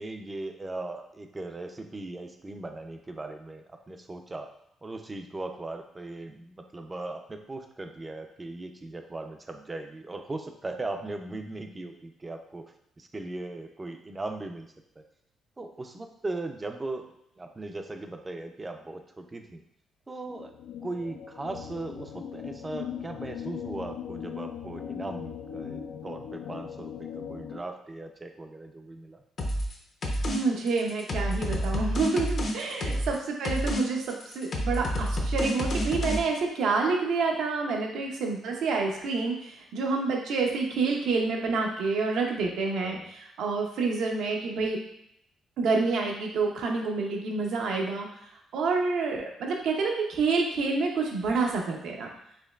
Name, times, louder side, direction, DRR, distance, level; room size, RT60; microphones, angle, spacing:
voice 1, 0.0-4.5 4.8-14.7 15.0-15.1 15.6-17.0 17.4-19.6 20.1-20.5 20.8-29.2 32.9-33.0 42.8-43.1, right 2 dB, 20° right, 5 dB, 0.4 m, -38 dB
sound 1, 20.3-27.6, left 8 dB, 90° left, 0.3 m, -39 dB
sound 2, 29.4-29.7 30.0-30.4 30.7-33.2 33.4-33.8 34.1-36.2, equal, 50° left, 0.7 m, -29 dB
voice 2, 30.2-44.8 45.6-48.1 48.5-52.1, right 4 dB, 75° right, 1 dB, 0.7 m, -28 dB
4.4 x 2.9 x 2.3 m, 0.76 s
cardioid pair, 90°, 0 cm